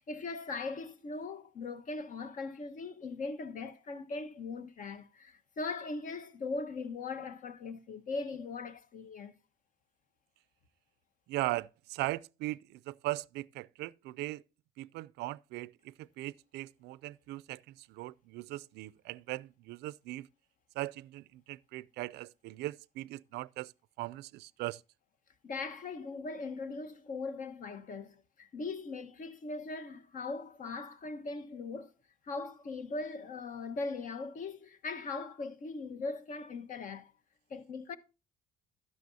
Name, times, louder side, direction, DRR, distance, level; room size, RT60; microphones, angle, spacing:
voice 1, 0.0-9.3 25.4-31.9 32.2-37.1 37.5-38.0, left 3 dB, 50° left, 1.2 m, -40 dB
voice 2, 11.3-14.4 14.8-20.3 20.8-23.7 24.0-24.8, right 18 dB, 80° right, 0.4 m, -39 dB
12.0 x 9.4 x 2.7 m
cardioid pair, 110°, 17 cm